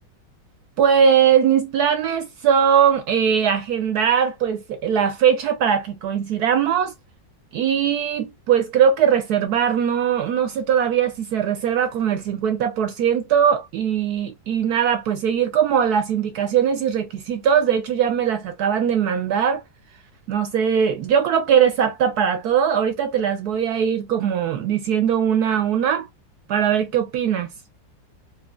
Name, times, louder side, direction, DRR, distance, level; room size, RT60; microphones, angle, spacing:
voice 1, 0.8-6.9 7.5-19.6 20.3-26.1 26.5-27.5, right 8 dB, 70° right, 0.9 m, -20 dB
4.4 x 2.6 x 2.3 m
omnidirectional pair, 2.0 m